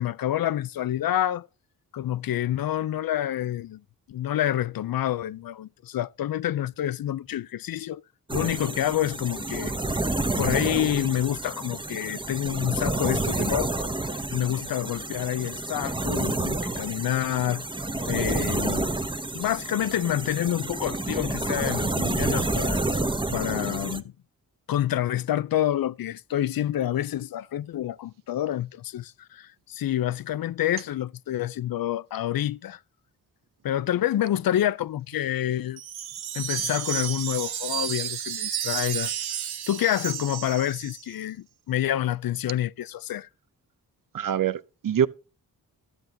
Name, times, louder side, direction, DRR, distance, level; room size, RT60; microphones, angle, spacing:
voice 1, 0.0-1.5 1.9-3.8 4.1-8.0 8.3-9.7 10.4-13.7 14.3-17.7 18.1-18.9 19.3-22.8 23.3-24.0 24.7-32.8 33.6-35.8 36.3-39.1 39.7-43.3, left 12 dB, 70° left, 0.6 m, -28 dB
sound 1, 8.3-24.0, right 2 dB, 15° right, 1.0 m, -29 dB
Wind chime, 35.8-41.1, right 10 dB, 85° right, 1.0 m, -32 dB
voice 2, 44.1-45.1, right 9 dB, 60° right, 0.8 m, -24 dB
13.0 x 7.4 x 3.9 m
cardioid pair, 70°, 37 cm